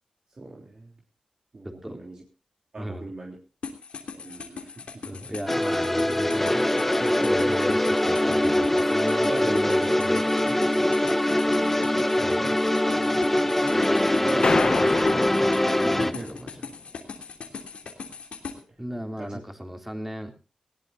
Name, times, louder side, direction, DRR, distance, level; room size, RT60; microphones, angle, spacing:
voice 1, 0.4-0.9 1.5-2.2 2.7-3.4 4.1-5.0 9.3-9.5 11.4-11.8 14.2-15.2 15.5-16.3 19.2-19.3, right 2 dB, 45° right, -1 dB, 3.4 m, -38 dB
voice 2, 1.6-2.0 2.8-3.1 5.0-6.7 7.0-10.6 12.2-12.6 15.8-16.7 18.8-20.3, equal, 10° right, 4 dB, 3.2 m, -35 dB
sound 1, 3.6-18.5, left 5 dB, 90° left, 3.1 m, -39 dB
sound 2, 5.5-16.1, left 1 dB, 10° left, 1.1 m, -23 dB
sound 3, 14.4-16.4, left 3 dB, 45° left, 0.9 m, -27 dB
20.5 x 17.0 x 2.7 m, 0.35 s
wide cardioid pair, 95°, 2 cm